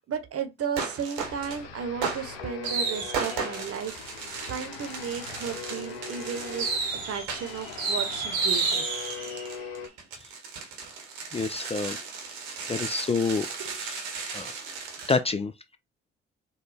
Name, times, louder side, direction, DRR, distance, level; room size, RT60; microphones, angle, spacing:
voice 1, 0.0-4.0 4.5-8.9 13.3-13.8, right 7 dB, 50° right, 1.0 m, -34 dB
sound 1, 0.8-1.6 2.0-15.2, right 5 dB, 80° right, 1.1 m, -33 dB
sound 2, 1.2-9.9, left 6 dB, 85° left, 0.6 m, -41 dB
voice 2, 11.3-12.0 12.7-13.5 14.3-14.5 15.1-15.8, left 4 dB, 20° left, 0.4 m, -27 dB
3.9 x 2.2 x 3.3 m
hypercardioid pair, 50°, 29 cm